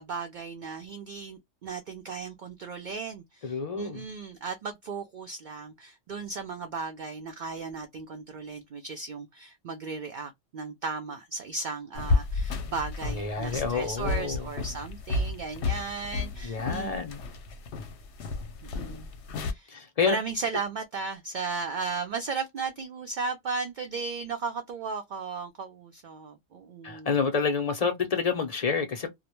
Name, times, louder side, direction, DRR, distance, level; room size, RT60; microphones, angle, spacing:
voice 1, 0.0-17.0 18.6-19.1 19.4-19.7 20.0-27.1, right 4 dB, 60° right, 0.5 m, -36 dB
voice 2, 3.4-4.1 13.0-14.5 16.4-17.2 19.7-20.2 26.8-29.1, left 5 dB, 45° left, 0.6 m, -28 dB
sound 1, 11.9-19.5, left 3 dB, 75° left, 0.9 m, -32 dB
2.2 x 2.0 x 2.9 m
omnidirectional pair, 1.2 m